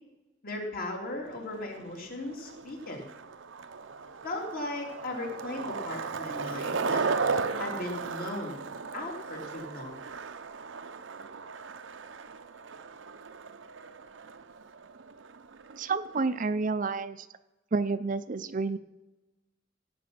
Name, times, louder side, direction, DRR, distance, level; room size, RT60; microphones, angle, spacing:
voice 1, 0.4-3.0 4.2-7.0 7.6-8.6 8.9-10.0, left 2 dB, 50° left, -1 dB, 3.2 m, -37 dB
Skateboard, 1.3-16.4, right 4 dB, 80° right, 0.7 m, -36 dB
voice 2, 15.8-17.3 17.7-18.8, right 4 dB, 45° right, 13 dB, 0.5 m, -29 dB
16.5 x 5.9 x 8.8 m, 1.1 s
head